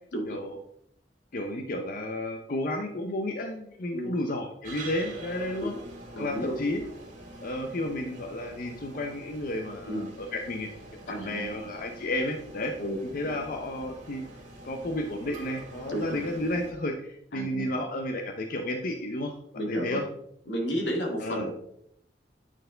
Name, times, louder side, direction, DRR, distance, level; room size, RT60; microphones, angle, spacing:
voice 1, 0.3-0.6 1.3-5.7 6.2-6.8 7.4-12.7 13.1-14.2 14.6-19.4 19.7-20.0 21.2-21.5, left 1 dB, 50° left, 4 dB, 0.6 m, -32 dB
sound 1, 4.6-16.7, right 2 dB, 45° right, 2.0 m, -46 dB
voice 2, 6.1-6.6 9.9-10.1 11.1-11.5 12.8-13.0 15.9-16.2 17.3-17.7 19.5-20.0 20.5-21.5, equal, 90° left, 0 dB, 2.1 m, -32 dB
9.0 x 4.3 x 3.8 m, 0.71 s
head